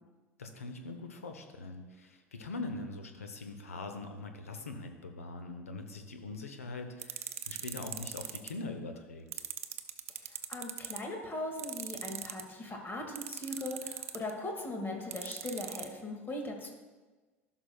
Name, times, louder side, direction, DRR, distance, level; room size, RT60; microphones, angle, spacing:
voice 1, 0.4-9.4, left 3 dB, 85° left, 5 dB, 0.9 m, -42 dB
sound 1, 7.0-8.5 9.3-11.0 11.6-12.4 13.2-14.3 15.1-15.9, right 10 dB, 80° right, 0.5 m, -38 dB
voice 2, 10.2-16.7, left 1 dB, 30° left, 2 dB, 2.0 m, -39 dB
15.5 x 6.1 x 2.3 m, 1.3 s
hypercardioid pair, 70°, 7 cm